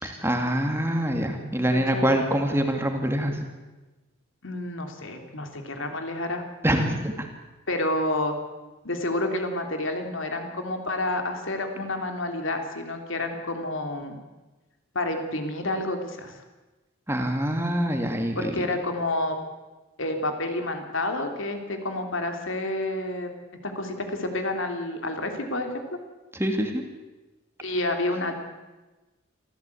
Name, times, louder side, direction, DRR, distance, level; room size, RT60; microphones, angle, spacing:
voice 1, 0.0-3.5 6.6-7.3 17.1-18.4 26.3-26.9, equal, 10° right, 4 dB, 2.3 m, -25 dB
voice 2, 1.7-2.1 4.4-6.4 7.7-8.4 8.8-14.2 14.9-16.4 18.3-19.4 20.0-23.3 23.6-25.7 27.6-28.4, left 2 dB, 70° left, 5 dB, 3.2 m, -29 dB
26.0 x 15.0 x 8.5 m, 1.2 s
head